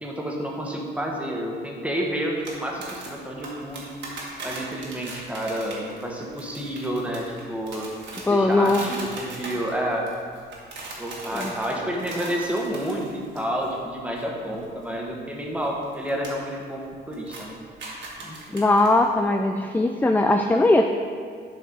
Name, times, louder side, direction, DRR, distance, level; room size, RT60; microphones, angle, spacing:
voice 1, 0.0-3.9 4.4-7.9 8.3-10.1 11.0-17.6 18.2-18.6, equal, 5° right, -1 dB, 1.4 m, -30 dB
sound 1, 2.5-13.7 14.0-14.2 14.5-16.3 16.6-16.9 17.1-19.1, right 2 dB, 65° right, 1.9 m, -39 dB
voice 2, 8.1-8.9 11.3-11.5 18.5-20.8, left 2 dB, 10° left, 5 dB, 0.4 m, -20 dB
8.3 x 5.3 x 4.0 m, 2.1 s
cardioid pair, 90°, 20 cm